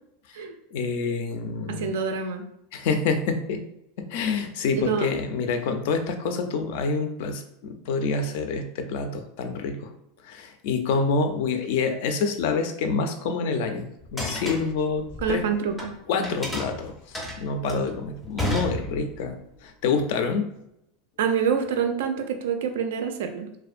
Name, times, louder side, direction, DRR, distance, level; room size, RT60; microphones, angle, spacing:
voice 1, 0.7-1.9 2.7-3.6 4.0-9.9 10.2-13.9 14.1-15.4 16.1-19.4 19.6-20.5, left 4 dB, 65° left, 7 dB, 0.3 m, -27 dB
voice 2, 1.7-2.4 4.7-5.1 15.2-15.8 21.2-23.5, right 7 dB, 85° right, 6 dB, 0.3 m, -26 dB
sound 1, 14.0-15.9 16.2-19.3, left 1 dB, 5° left, 0.5 m, -32 dB
2.5 x 2.1 x 2.4 m, 0.80 s
supercardioid pair, 150°, 0 cm